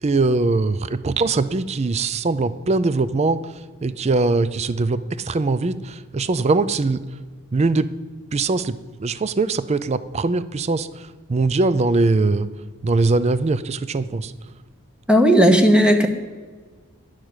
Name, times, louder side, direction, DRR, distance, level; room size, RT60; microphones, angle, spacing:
voice 1, 0.0-3.4 3.8-7.0 7.5-7.9 8.3-10.9 11.3-12.5 12.8-14.3, right 3 dB, 30° right, 15 dB, 0.4 m, -21 dB
voice 2, 15.1-16.1, equal, 5° right, 5 dB, 0.9 m, -14 dB
10.5 x 6.4 x 8.8 m, 1.4 s
head